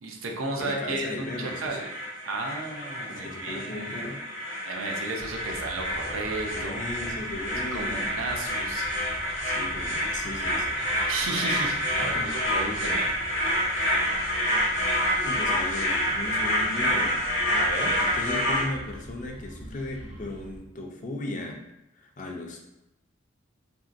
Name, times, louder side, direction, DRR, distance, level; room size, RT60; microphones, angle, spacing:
voice 1, 0.0-1.9 2.2-4.0 4.7-6.9 7.7-8.9 11.1-12.2 12.5-13.1 17.5-17.9, right 2 dB, 85° right, 1 dB, 0.5 m, -33 dB
voice 2, 0.6-1.8 3.1-4.2 6.5-8.1 9.4-10.8 11.9-12.4 15.2-17.2 18.0-21.6 21.9-22.6, left 2 dB, 40° left, 2 dB, 0.4 m, -36 dB
sound 1, 1.1-18.6, equal, 60° left, 0.8 m, -28 dB
sound 2, 5.2-20.6, right 1 dB, 30° right, 0.4 m, -43 dB
2.9 x 2.6 x 2.5 m, 0.90 s
head